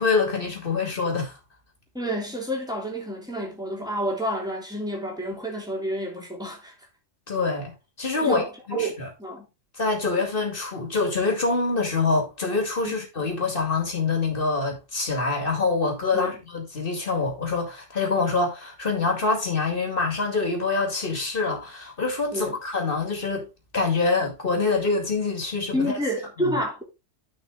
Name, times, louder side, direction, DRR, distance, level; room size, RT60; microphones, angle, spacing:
voice 1, 0.0-1.3 7.3-7.7 8.0-9.1 9.8-23.5 23.7-25.9 26.4-26.6, left 4 dB, 45° left, 2.6 m, -25 dB
voice 2, 1.9-6.7 8.2-9.5 12.8-12.9 16.1-16.3 22.3-22.6 25.7-26.8, equal, 5° right, 3.2 m, -29 dB
9.9 x 5.6 x 3.8 m
omnidirectional pair, 1.3 m